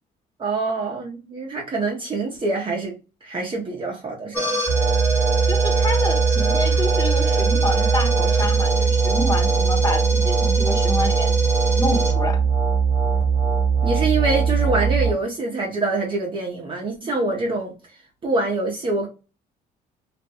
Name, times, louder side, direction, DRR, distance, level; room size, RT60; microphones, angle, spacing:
voice 1, 0.4-3.0 3.2-4.6 13.8-17.7 18.2-19.1, right 3 dB, 30° right, 0.8 m, -25 dB
sound 1, 4.3-15.1, right 5 dB, 15° right, 1.3 m, -20 dB
voice 2, 5.5-11.4 11.8-12.4, left 2 dB, 20° left, 1.0 m, -28 dB
2.5 x 2.2 x 4.0 m
cardioid pair, 110°, 17 cm